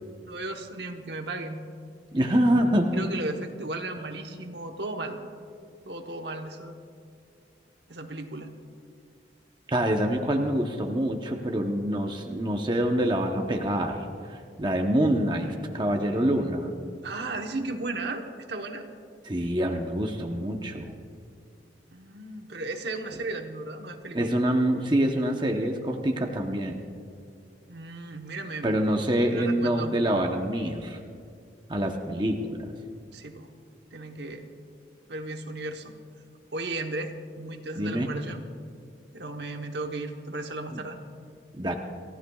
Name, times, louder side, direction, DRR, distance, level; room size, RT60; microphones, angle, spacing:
voice 1, 0.2-1.6 2.9-5.2 5.9-6.7 7.9-8.5 17.0-18.9 21.9-24.3 27.7-28.8 29.3-29.9 33.1-33.5 33.9-34.5 35.1-35.9 36.5-38.4 39.1-41.0, right 2 dB, 65° right, 4 dB, 1.1 m, -35 dB
voice 2, 2.1-3.0 9.7-16.7 19.3-21.0 24.1-26.8 28.6-31.0 31.7-32.7 37.8-38.1 41.6-41.8, right 1 dB, 25° right, 2 dB, 0.9 m, -26 dB
28.5 x 15.0 x 2.4 m, 2.3 s
head